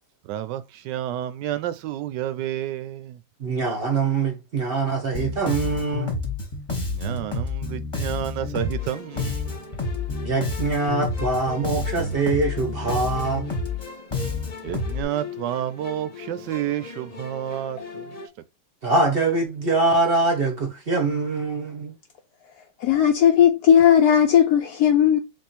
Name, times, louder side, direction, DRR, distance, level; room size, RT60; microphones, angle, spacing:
voice 1, 0.2-3.2 6.9-9.7 14.6-18.2, right 12 dB, 80° right, 1.2 m, -30 dB
voice 2, 3.4-6.2 10.2-13.5 18.8-22.0, right 3 dB, 40° right, 0.9 m, -23 dB
Bass guitar, 5.1-15.0, left 3 dB, 20° left, 1.0 m, -29 dB
sound 1, 8.6-18.3, left 4 dB, 55° left, 0.4 m, -40 dB
voice 3, 22.8-25.2, left 9 dB, 70° left, 1.0 m, -16 dB
3.7 x 3.0 x 4.1 m
omnidirectional pair, 1.9 m